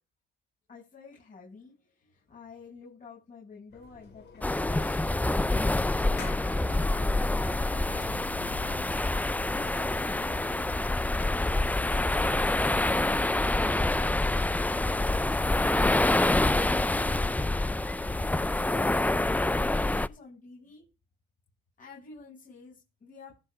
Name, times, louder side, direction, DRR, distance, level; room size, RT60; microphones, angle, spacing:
voice 1, 0.7-4.9 5.4-7.2 7.5-8.1 8.6-10.7 17.9-20.8 21.8-23.4, left 4 dB, 40° left, -4 dB, 7.2 m, -50 dB
sound 1, 3.7-15.9, left 5 dB, 60° left, 5.2 m, -52 dB
sound 2, 4.4-20.1, left 2 dB, 10° left, 0.5 m, -26 dB
Motor vehicle (road), 6.7-17.8, left 5 dB, 85° left, 1.8 m, -47 dB
15.5 x 6.0 x 5.1 m, 0.27 s
cardioid pair, 90°, 20 cm